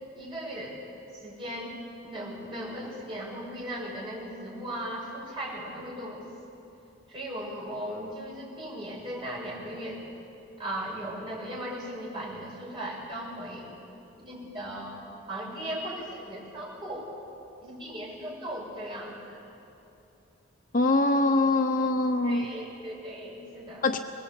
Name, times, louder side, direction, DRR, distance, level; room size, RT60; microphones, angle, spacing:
voice 1, 0.1-0.8 1.2-1.8 2.0-6.2 7.1-10.0 10.6-13.7 14.2-15.0 15.3-17.1 17.6-19.4 22.2-23.9, right 1 dB, 25° right, -5 dB, 6.9 m, -37 dB
voice 2, 20.7-22.5 23.8-24.0, left 2 dB, 40° left, 7 dB, 0.7 m, -23 dB
24.5 x 20.5 x 8.4 m, 2.8 s
head